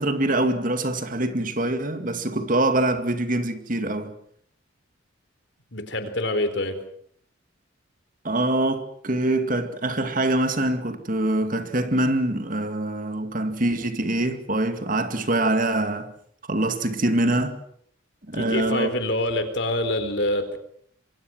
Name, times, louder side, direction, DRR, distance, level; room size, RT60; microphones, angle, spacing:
voice 1, 0.0-4.1 8.2-16.1 16.5-17.6 18.3-18.9, right 1 dB, 40° right, 2.2 m, -24 dB
voice 2, 5.7-6.8 18.3-20.6, left 1 dB, 60° left, 3.9 m, -26 dB
26.5 x 24.0 x 6.3 m
head